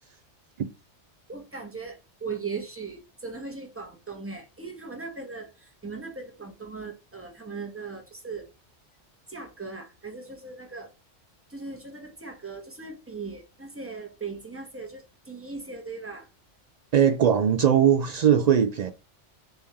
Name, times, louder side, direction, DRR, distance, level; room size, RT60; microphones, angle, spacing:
voice 1, 1.3-8.5 9.3-10.9 11.5-16.3, right 4 dB, 10° right, 1.0 m, -38 dB
voice 2, 16.9-18.9, right 8 dB, 70° right, 0.4 m, -20 dB
3.6 x 3.3 x 4.2 m
omnidirectional pair, 1.2 m